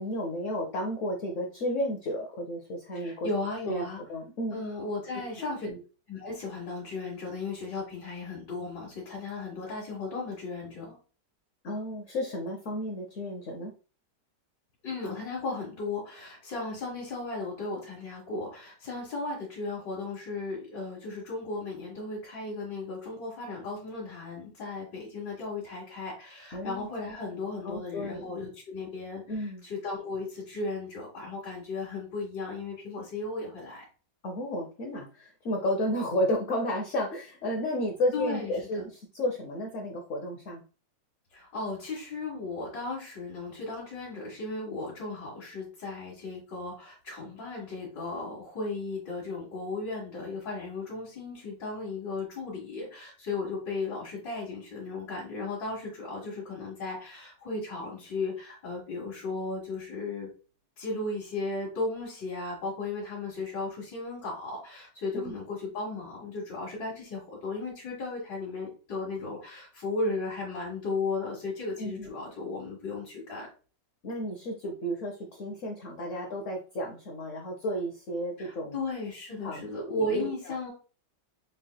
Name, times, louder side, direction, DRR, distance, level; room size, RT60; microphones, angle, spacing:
voice 1, 0.0-3.3 3.7-4.6 5.4-5.8 11.6-13.7 26.5-26.9 27.6-28.3 29.3-29.6 34.2-40.6 65.1-65.4 71.8-72.1 74.0-78.8 79.4-80.7, left 1 dB, 55° left, 1 dB, 0.9 m, -32 dB
voice 2, 2.9-4.0 4.5-5.7 6.1-11.0 14.8-33.8 38.1-38.8 41.3-60.3 60.8-73.5 78.4-80.7, left 3 dB, 90° left, -6 dB, 2.4 m, -35 dB
6.5 x 3.2 x 2.2 m, 0.36 s
omnidirectional pair, 1.8 m